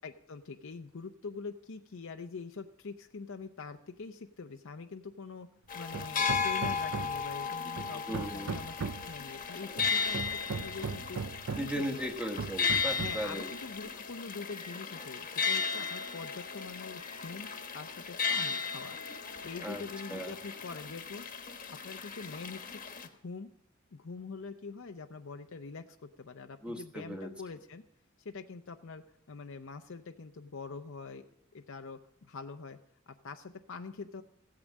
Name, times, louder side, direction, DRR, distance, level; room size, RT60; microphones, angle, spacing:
voice 1, 0.0-5.5 5.7-11.2 11.6-11.9 13.0-17.5 17.7-19.0 19.4-21.4 21.7-22.8 23.1-23.5 23.9-27.8 28.2-31.2 31.5-32.8 33.1-34.2, left 4 dB, 65° left, 6 dB, 0.6 m, -44 dB
sound 1, 5.7-23.1, left 5 dB, 40° left, 1.2 m, -35 dB
Hammer, 5.9-7.3 7.8-9.2 9.8-11.8 12.4-13.3, right 5 dB, 75° right, 0.5 m, -38 dB
voice 2, 8.1-8.5 11.6-13.5 19.6-19.8 20.1-20.4 26.6-27.3, equal, 5° right, 4 dB, 1.3 m, -37 dB
15.0 x 8.7 x 7.3 m, 0.74 s
head